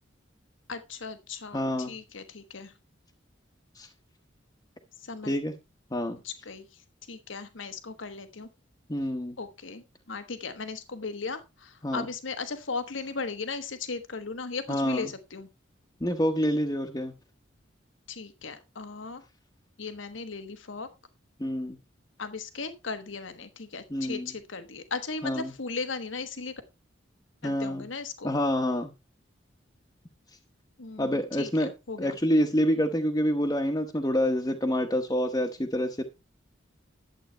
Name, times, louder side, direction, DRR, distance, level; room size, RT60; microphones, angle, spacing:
voice 1, 0.7-2.7 5.0-5.3 6.2-6.8 7.1-8.5 9.4-15.5 18.1-19.2 19.8-20.9 22.2-26.5 27.4-28.3 30.8-31.5 31.9-32.2, left 4 dB, 80° left, 9 dB, 1.3 m, -37 dB
voice 2, 1.5-1.9 3.7-3.9 5.2-5.5 5.9-6.2 8.9-9.4 11.8-12.0 14.7-15.1 16.0-17.1 21.4-21.8 23.9-24.3 25.2-25.5 27.4-27.8 28.2-28.9 31.0-31.7 32.0-36.0, equal, 20° left, 2 dB, 1.0 m, -27 dB
12.0 x 8.1 x 4.4 m, 0.27 s
head